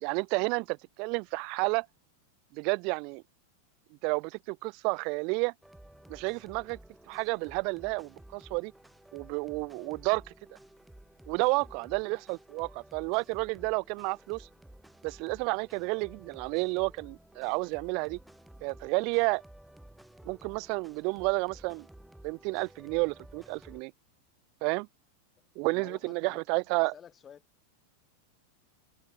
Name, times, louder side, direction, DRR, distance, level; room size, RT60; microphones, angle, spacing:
voice 1, 0.0-1.9 2.5-3.2 4.0-5.5 6.1-6.8 7.1-8.7 9.1-10.2 11.3-14.5 15.0-18.2 18.6-19.4 20.2-21.9 22.2-23.9 24.6-24.9 25.6-26.9, right 32 dB, 45° right, 0.5 m, -31 dB
sound 1, 5.6-23.8, right 1 dB, 5° right, 6.7 m, -54 dB
voice 2, 11.5-12.0 15.8-16.0 19.2-19.4 25.6-26.4 26.7-27.4, left 8 dB, 25° left, 3.1 m, -54 dB
figure-of-eight pair, 90°, 0 cm